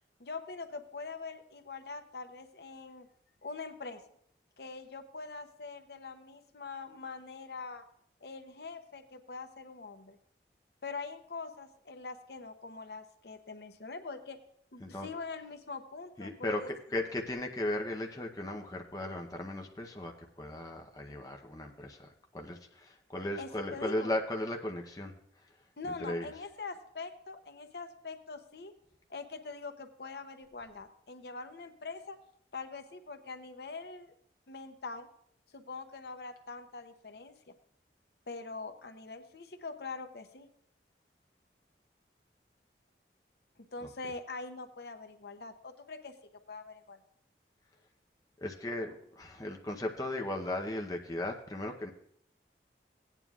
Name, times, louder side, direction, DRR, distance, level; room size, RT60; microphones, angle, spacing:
voice 1, 0.2-3.1 3.4-4.0 4.6-7.8 8.2-10.2 10.8-14.4 14.7-16.7 23.4-24.1 25.8-28.7 29.1-32.2 32.5-34.1 34.5-35.1 35.5-37.3 38.3-40.5 43.7-46.1 46.5-47.0, left 4 dB, 65° left, 7 dB, 0.8 m, -43 dB
voice 2, 16.2-25.1 26.0-26.3 43.8-43.9 48.4-51.9, left 1 dB, 20° left, 2 dB, 0.7 m, -36 dB
16.5 x 9.2 x 2.4 m, 0.69 s
head